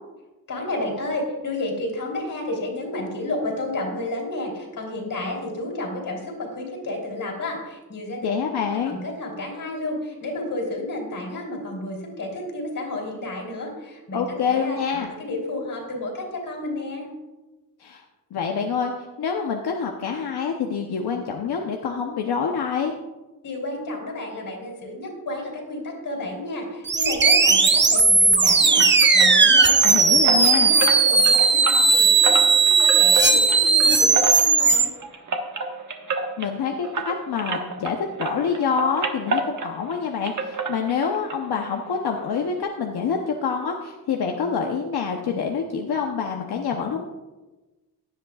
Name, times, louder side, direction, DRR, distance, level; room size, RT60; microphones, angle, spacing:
voice 1, 0.5-8.3 8.6-17.1 23.4-32.4 32.6-34.9, left 2 dB, 55° left, 0 dB, 3.3 m, -31 dB
voice 2, 8.2-9.0 14.1-15.1 17.8-18.0 18.3-22.9 29.8-30.7 36.4-47.1, left 6 dB, 90° left, 2 dB, 0.9 m, -26 dB
sound 1, 26.9-34.8, right 4 dB, 30° right, 0.8 m, -17 dB
sound 2, 28.8-37.9 38.2-40.0 40.2-41.4 41.6-41.7 42.2-42.3 42.6-42.7, right 3 dB, 50° right, 1.3 m, -29 dB
16.5 x 10.5 x 2.4 m, 1.1 s
wide cardioid pair, 135°, 38 cm